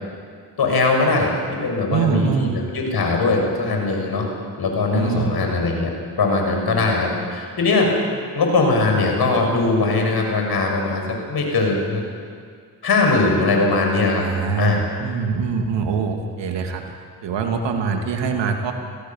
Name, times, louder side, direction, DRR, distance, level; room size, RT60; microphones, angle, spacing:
voice 1, 0.6-2.5 2.7-4.3 4.6-7.9 8.3-12.0 12.8-14.2 14.6-14.8, left 3 dB, 60° left, 2 dB, 6.5 m, -20 dB
voice 2, 1.9-2.6 4.9-5.4 14.2-16.8 17.2-18.7, right 5 dB, 75° right, 3 dB, 2.7 m, -23 dB
25.0 x 17.0 x 7.4 m, 2.1 s
supercardioid pair, 50°, 44 cm